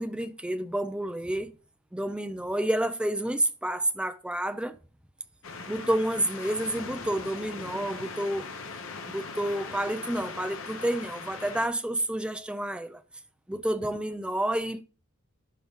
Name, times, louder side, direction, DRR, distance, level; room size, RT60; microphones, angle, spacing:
voice 1, 0.0-1.5 1.9-4.8 5.7-8.5 9.1-13.0 13.5-14.8, right 1 dB, 5° right, 0.5 m, -29 dB
sound 1, 5.4-11.7, left 4 dB, 70° left, 1.1 m, -40 dB
11.0 x 3.8 x 3.7 m
head